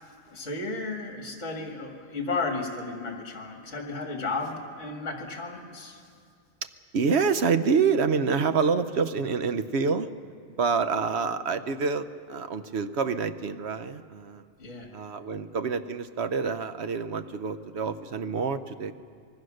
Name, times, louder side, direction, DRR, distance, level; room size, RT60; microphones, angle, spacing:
voice 1, 0.3-6.0 14.6-14.9, left 3 dB, 50° left, 2 dB, 2.7 m, -33 dB
voice 2, 6.9-10.1 10.6-14.4 14.9-18.9, right 5 dB, 55° right, 10 dB, 0.9 m, -27 dB
25.5 x 21.0 x 6.5 m, 2.3 s
omnidirectional pair, 1.6 m